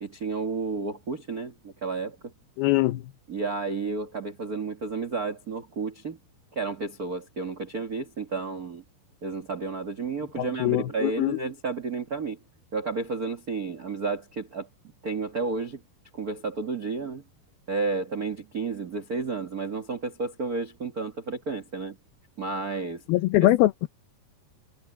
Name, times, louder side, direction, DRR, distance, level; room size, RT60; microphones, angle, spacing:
voice 1, 0.0-2.3 3.3-6.2 6.5-8.8 9.2-12.4 12.7-14.7 15.0-15.8 16.1-17.2 17.7-22.0 22.4-23.0 23.4-23.5, right 4 dB, 80° right, 0.8 m, -31 dB
voice 2, 2.6-3.0 10.4-11.4 23.1-23.9, left 17 dB, 75° left, 2.5 m, -22 dB
omnidirectional pair, 4.7 m